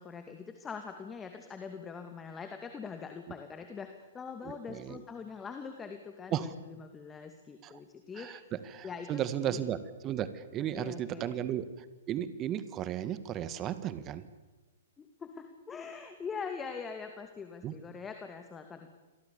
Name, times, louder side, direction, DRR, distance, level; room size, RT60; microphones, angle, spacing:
voice 1, 0.0-8.5 8.8-9.6 10.8-11.4 15.0-18.9, left 5 dB, 15° left, 6 dB, 2.3 m, -43 dB
voice 2, 4.4-5.0 6.3-6.5 7.6-7.7 8.2-9.8 10.0-11.7 12.1-14.3 17.6-17.7, right 10 dB, 25° right, 13 dB, 1.9 m, -34 dB
28.0 x 23.0 x 7.1 m, 1.2 s
figure-of-eight pair, 115°, 0 cm